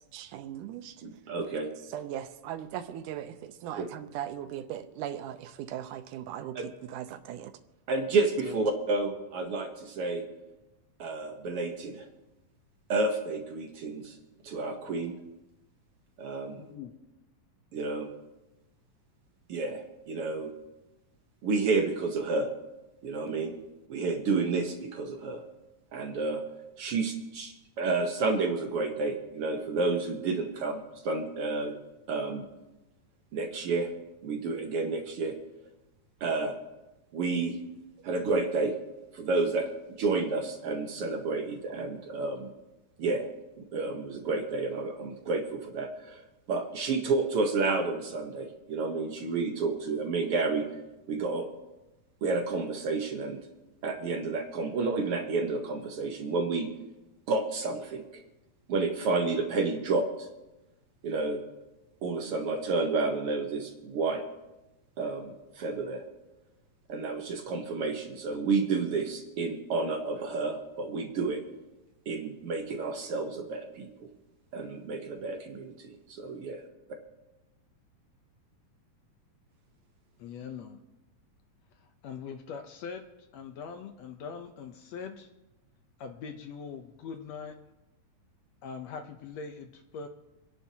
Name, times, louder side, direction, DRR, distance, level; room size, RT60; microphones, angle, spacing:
voice 1, 0.1-1.0 1.9-7.5, right 11 dB, 80° right, 10 dB, 2.2 m, -39 dB
voice 2, 1.0-1.7 3.7-3.9 6.5-6.6 7.9-10.2 11.0-12.1 12.9-14.2 14.4-15.1 16.2-16.6 17.7-18.1 19.5-20.5 21.4-22.5 23.0-23.6 23.9-25.4 25.9-26.4 26.8-31.7 32.1-32.4 33.3-33.9 34.2-35.3 36.2-36.6 37.1-37.6 38.0-38.7 39.1-39.7 40.0-42.5 43.0-43.2 43.6-50.7 51.1-51.5 52.2-53.4 53.8-56.7 57.3-58.0 58.7-60.3 61.0-61.4 62.0-64.2 65.0-66.0 66.9-71.4 72.1-74.1 74.5-76.6, right 3 dB, 60° right, 4 dB, 1.5 m, -30 dB
voice 3, 16.6-16.9 80.2-80.8 82.0-83.0 83.3-85.3 86.0-87.5 88.6-90.1, left 6 dB, 70° left, 6 dB, 1.7 m, -41 dB
27.5 x 10.5 x 2.8 m, 1.0 s
omnidirectional pair, 3.8 m